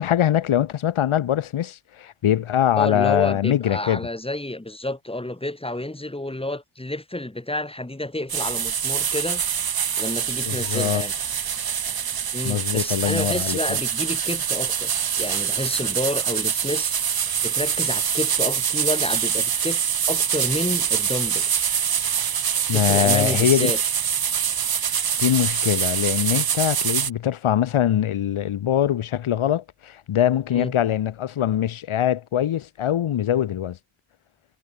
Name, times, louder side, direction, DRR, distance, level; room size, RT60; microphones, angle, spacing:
voice 1, 0.0-4.0 10.5-11.0 12.4-13.6 22.7-23.7 25.2-33.8, left 10 dB, 85° left, 1.8 m, -22 dB
voice 2, 2.7-9.4 10.0-11.1 12.3-17.0 17.4-21.5 22.7-23.8 30.5-30.7, left 1 dB, 10° left, 6.2 m, -30 dB
sound 1, 8.3-27.1, right 8 dB, 50° right, 1.3 m, -24 dB
wide cardioid pair, 105°, 48 cm